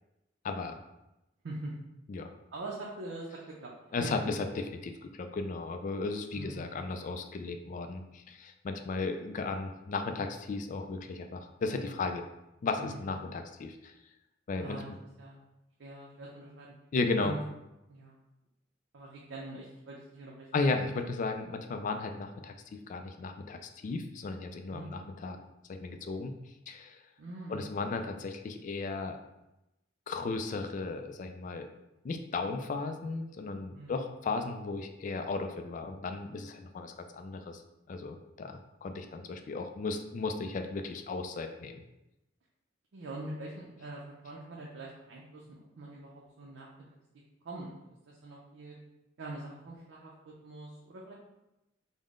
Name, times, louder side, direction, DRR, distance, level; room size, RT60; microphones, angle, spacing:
voice 1, 0.4-0.8 2.1-2.3 3.9-12.2 12.6-13.9 14.5-14.8 16.9-17.3 20.5-25.4 25.7-26.3 26.7-27.0 27.5-29.2 30.1-31.7 32.0-37.6 37.9-41.8, left 3 dB, 45° left, 6 dB, 0.3 m, -35 dB
voice 2, 2.5-3.7 4.0-4.1 6.4-6.7 12.8-13.1 14.5-15.4 15.8-16.7 17.2-17.4 17.9-18.2 18.9-20.5 24.7-24.9 27.2-27.7 28.0-28.1 33.8-34.1 42.9-46.7 47.4-47.7 48.1-48.8 49.2-51.1, right 2 dB, 85° right, -4 dB, 0.5 m, -43 dB
3.6 x 2.1 x 3.6 m, 0.93 s
head